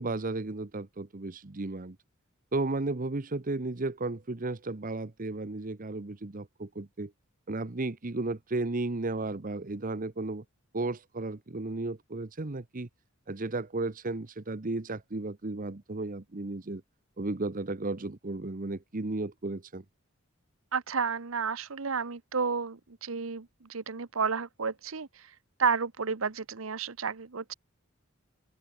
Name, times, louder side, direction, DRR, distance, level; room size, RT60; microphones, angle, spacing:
voice 1, 0.0-2.0 2.5-7.1 7.5-10.4 10.7-12.9 13.3-16.8 17.2-19.8, right 2 dB, 40° right, 1.0 m, -34 dB
voice 2, 20.7-27.5, right 5 dB, 75° right, 1.0 m, -32 dB
open air
head